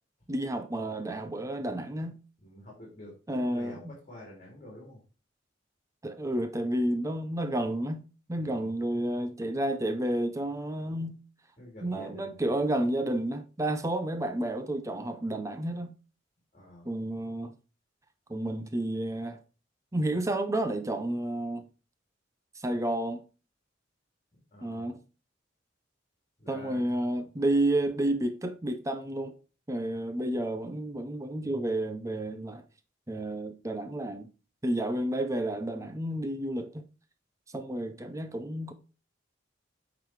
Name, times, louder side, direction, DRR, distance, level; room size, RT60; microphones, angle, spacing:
voice 1, 0.3-2.2 3.3-3.9 6.0-8.0 8.3-11.2 11.8-15.9 16.9-17.5 18.3-19.4 19.9-21.7 22.6-23.2 24.6-25.0 26.5-29.3 29.7-32.6 33.1-34.3 34.6-36.8 37.5-38.7, right 1 dB, 15° right, 0.6 m, -31 dB
voice 2, 2.4-5.0 8.4-8.7 11.6-12.4 16.5-16.9 24.5-24.9 26.4-27.2 34.9-35.0, equal, 40° left, 3.1 m, -48 dB
8.9 x 4.0 x 4.6 m
head